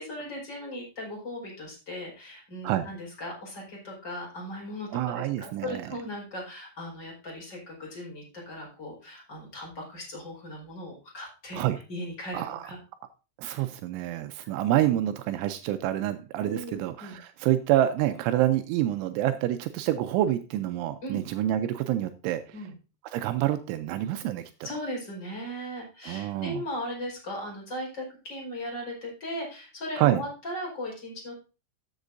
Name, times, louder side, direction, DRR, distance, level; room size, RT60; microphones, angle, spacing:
voice 1, 0.0-4.9 5.1-11.6 11.9-12.8 16.4-17.2 21.0-21.2 22.5-22.7 24.6-31.3, equal, 25° left, -2 dB, 4.7 m, -38 dB
voice 2, 4.9-5.9 11.5-11.8 12.3-12.7 13.4-22.4 23.0-24.7 26.0-26.6 30.0-30.2, right 13 dB, 85° right, 9 dB, 3.0 m, -27 dB
13.0 x 8.1 x 2.6 m, 0.32 s
omnidirectional pair, 5.6 m